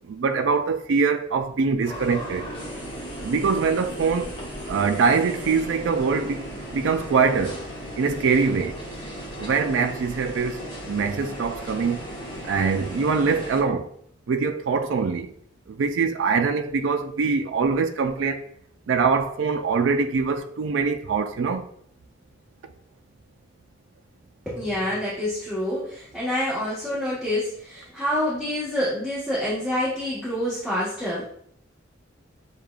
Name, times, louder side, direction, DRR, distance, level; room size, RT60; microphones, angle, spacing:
voice 1, 0.1-2.4 3.2-4.3 4.7-7.6 8.0-8.8 9.4-10.6 10.9-12.0 12.4-13.9 14.3-15.3 15.8-18.4 18.9-21.7, right 5 dB, 80° right, 0.4 m, -23 dB
sound 1, 1.8-13.6, equal, 25° left, 1.1 m, -36 dB
voice 2, 24.4-31.3, left 1 dB, ahead, 1.3 m, -27 dB
6.5 x 2.3 x 2.4 m
head